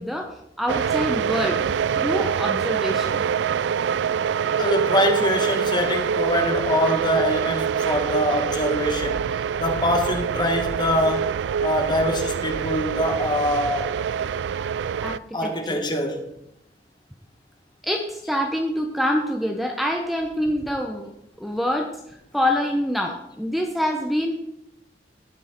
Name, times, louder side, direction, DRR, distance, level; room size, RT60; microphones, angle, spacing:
voice 1, 0.0-3.2 15.0-15.8 17.8-21.1 21.4-24.3, equal, ahead, 2 dB, 0.9 m, -26 dB
sound 1, 0.7-15.2, right 7 dB, 75° right, 0.3 m, -25 dB
voice 2, 4.6-9.2 9.6-11.3 11.6-13.9 15.3-16.2, equal, 25° left, 4 dB, 1.6 m, -24 dB
18.0 x 6.2 x 4.5 m, 0.82 s
head